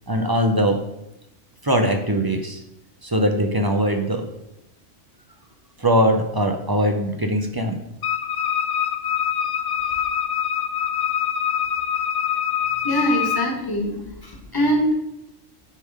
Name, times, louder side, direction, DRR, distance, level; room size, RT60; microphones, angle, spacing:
voice 1, 0.1-0.8 1.6-2.6 3.0-4.3 5.8-7.8, equal, 30° right, 5 dB, 0.4 m, -21 dB
Wind instrument woodwind instrument, 8.0-13.5, left 9 dB, 55° left, 0.7 m, -24 dB
voice 2, 12.8-15.0, equal, 15° left, 0 dB, 1.4 m, -23 dB
9.8 x 3.6 x 4.8 m, 0.87 s
omnidirectional pair, 1.3 m